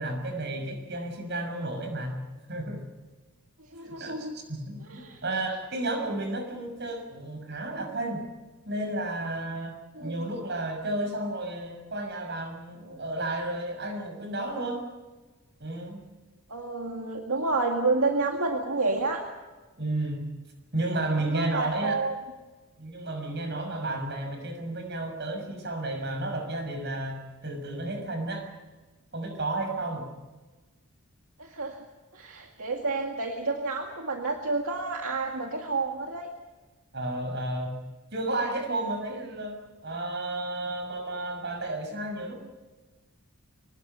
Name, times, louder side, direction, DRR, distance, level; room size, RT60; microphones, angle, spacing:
voice 1, 0.0-2.2 2.5-2.8 3.8-8.2 8.7-14.8 15.6-16.0 19.8-20.2 20.7-22.0 22.8-28.5 29.1-30.1 36.9-37.8 38.1-39.6 39.8-42.4, right 2 dB, 50° right, 5 dB, 6.1 m, -32 dB
voice 2, 3.7-4.4 4.9-5.2 9.9-10.2 16.5-19.2 21.3-22.2 31.4-31.8 32.1-36.3, right 3 dB, 70° right, 2 dB, 2.2 m, -29 dB
24.5 x 20.0 x 6.8 m, 1.3 s
head